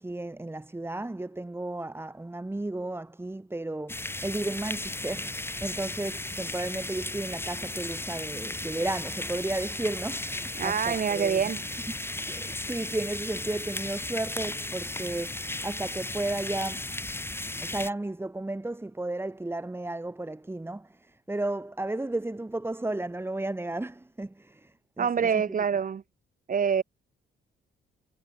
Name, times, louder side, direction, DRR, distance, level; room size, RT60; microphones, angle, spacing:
voice 1, 0.0-11.4 12.3-16.9 17.6-25.5, right 2 dB, 10° right, 2.7 m, -34 dB
sound 1, 3.9-17.9, left 2 dB, 10° left, 4.5 m, -35 dB
voice 2, 10.6-11.6 25.0-26.0 26.5-26.8, right 7 dB, 45° right, 2.0 m, -26 dB
cardioid pair, 90°, 20 cm